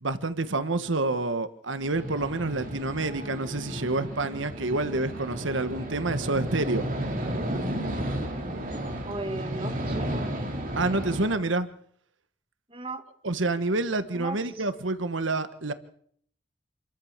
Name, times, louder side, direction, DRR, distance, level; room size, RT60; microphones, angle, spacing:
voice 1, 0.0-6.9 10.7-11.7 13.2-15.7, right 2 dB, 85° right, 11 dB, 1.4 m, -28 dB
sound 1, 1.9-11.4, right 1 dB, 45° right, 4.1 m, -33 dB
voice 2, 9.1-10.2 12.7-13.0 14.1-14.6, right 2 dB, 30° right, 7 dB, 2.1 m, -36 dB
27.5 x 14.0 x 7.4 m, 0.63 s
head